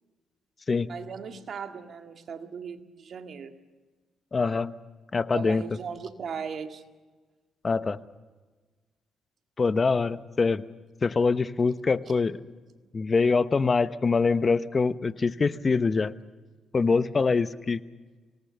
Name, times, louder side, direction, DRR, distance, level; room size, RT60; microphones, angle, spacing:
voice 1, 0.9-3.5 5.3-6.8, right 6 dB, 55° right, 6 dB, 2.0 m, -37 dB
voice 2, 4.3-4.7 5.1-5.6 7.6-8.0 9.6-10.6 11.0-12.4 12.9-16.1 16.7-17.8, left 4 dB, 35° left, 14 dB, 0.9 m, -24 dB
25.0 x 18.5 x 6.9 m, 1.3 s
cardioid pair, 90°, 0 cm